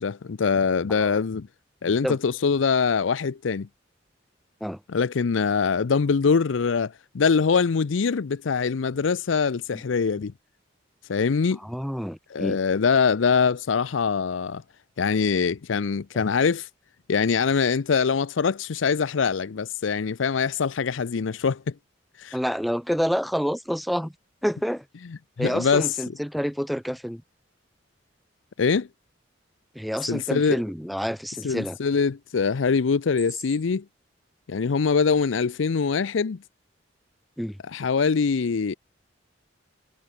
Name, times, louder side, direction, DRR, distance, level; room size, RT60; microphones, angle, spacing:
voice 1, 0.0-1.5 1.8-3.7 4.9-10.3 11.1-11.6 12.3-14.6 15.0-16.7 17.1-21.6 22.2-22.4 25.4-25.9 28.6-28.9 30.1-30.6 31.4-33.8 34.5-36.4 37.7-38.7, left 5 dB, 80° left, 0.5 m, -23 dB
voice 2, 11.6-12.6 22.3-24.1 24.4-24.8 25.4-27.2 29.7-31.8 37.4-37.6, equal, ahead, 1.6 m, -28 dB
head